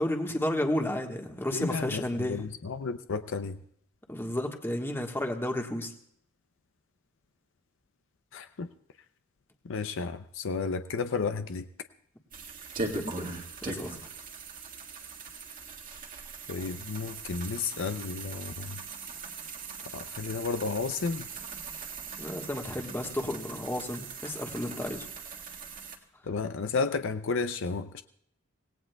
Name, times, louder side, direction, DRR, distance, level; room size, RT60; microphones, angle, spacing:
voice 1, 0.0-2.4 4.1-5.9 12.9-13.3 13.6-14.0 22.2-25.1, left 1 dB, 10° left, 3 dB, 1.3 m, -32 dB
voice 2, 1.5-3.6 8.3-8.7 9.6-11.7 16.5-18.8 19.9-21.3 26.2-28.0, left 4 dB, 60° left, 10 dB, 0.6 m, -32 dB
sound 1, 12.3-26.0, right 4 dB, 40° right, 1.8 m, -40 dB
26.0 x 17.5 x 2.3 m, 0.69 s
head